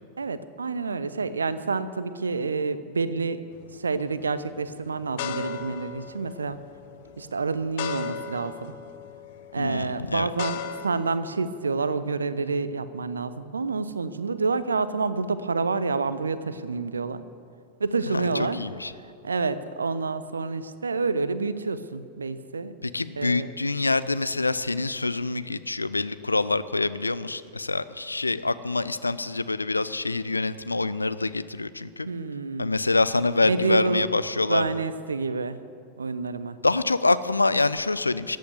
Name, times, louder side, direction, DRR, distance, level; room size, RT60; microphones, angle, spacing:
voice 1, 0.2-3.4 3.7-6.6 7.2-8.7 9.5-17.2 17.8-18.6 19.0-22.7 23.2-23.5 32.1-32.7 33.4-34.1 34.5-35.6 36.0-36.6, right 4 dB, 75° right, 14 dB, 0.6 m, -28 dB
sound 1, 3.6-4.0 4.6-10.9, left 8 dB, 55° left, 0.8 m, -37 dB
voice 2, 9.6-10.3 18.1-18.9 22.8-32.1 32.6-34.7 36.6-38.4, left 3 dB, 80° left, 15 dB, 0.4 m, -26 dB
14.0 x 8.5 x 8.0 m, 2.4 s
figure-of-eight pair, 90°, 0 cm